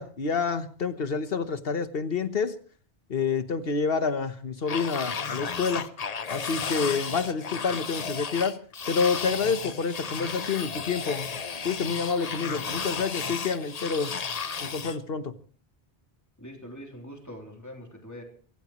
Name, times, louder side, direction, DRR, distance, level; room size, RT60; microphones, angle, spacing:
voice 1, 0.0-2.5 3.1-5.9 6.3-8.6 8.9-11.3 11.6-14.1 14.6-15.3, left 5 dB, 65° left, 11 dB, 1.3 m, -28 dB
sound 1, 4.7-15.0, left 5 dB, 40° left, 0.8 m, -33 dB
voice 2, 16.4-18.2, equal, 15° left, 1 dB, 3.4 m, -43 dB
24.0 x 15.5 x 3.1 m, 0.42 s
omnidirectional pair, 1.1 m